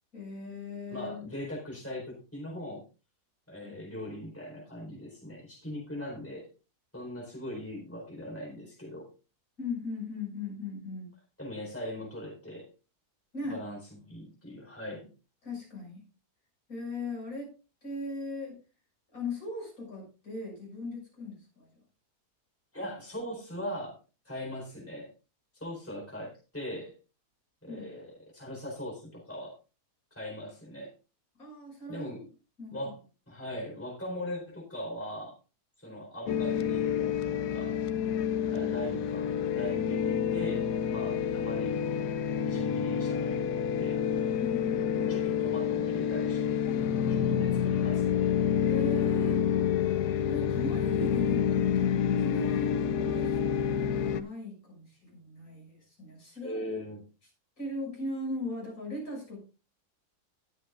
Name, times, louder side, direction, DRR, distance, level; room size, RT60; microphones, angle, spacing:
voice 1, 0.1-1.3 3.6-3.8 9.6-11.1 13.3-13.6 15.4-16.0 16.7-17.5 17.8-18.6 19.1-21.7 27.7-27.9 31.4-32.1 32.6-32.9 44.4-45.3 48.6-49.4 50.2-56.6 57.6-59.4, left 2 dB, 60° left, -1 dB, 7.1 m, -38 dB
voice 2, 0.9-2.8 3.5-6.5 6.9-9.1 11.4-12.7 13.4-15.1 22.7-24.0 24.2-25.1 25.5-26.9 27.6-29.5 30.1-30.9 31.9-32.2 32.7-33.0 33.3-35.4 35.8-37.7 38.5-41.9 42.3-44.0 44.9-46.6 47.1-48.2 56.4-57.0, equal, 10° left, -2 dB, 4.3 m, -40 dB
sound 1, 36.3-54.2, left 8 dB, 80° left, 1.2 m, -28 dB
20.0 x 7.7 x 2.5 m, 0.31 s
omnidirectional pair, 1.7 m